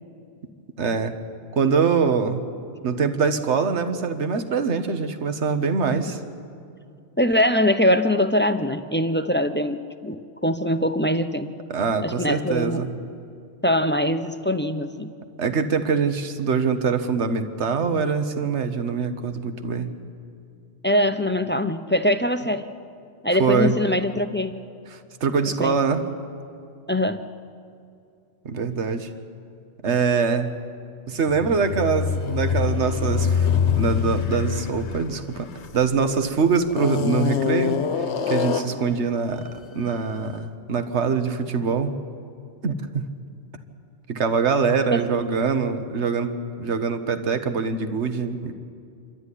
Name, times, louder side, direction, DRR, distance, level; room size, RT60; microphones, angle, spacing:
voice 1, 0.8-1.1 1.5-2.4 2.8-6.2 11.7-12.9 15.4-19.9 23.4-23.8 24.9-26.0 28.4-29.1 29.8-30.5 31.1-35.5 35.7-37.8 38.3-41.9 42.6-43.0 44.1-48.5, right 5 dB, 70° right, 9 dB, 1.5 m, -24 dB
voice 2, 7.2-11.5 12.0-12.9 13.6-15.1 20.8-22.7 23.2-24.5 25.6-25.8 26.9-27.3 44.9-45.1, left 1 dB, 15° left, 10 dB, 0.5 m, -22 dB
sound 1, 31.3-36.1 36.7-38.9, left 7 dB, 70° left, 1.3 m, -24 dB
27.5 x 12.5 x 9.9 m, 2.4 s
omnidirectional pair, 1.2 m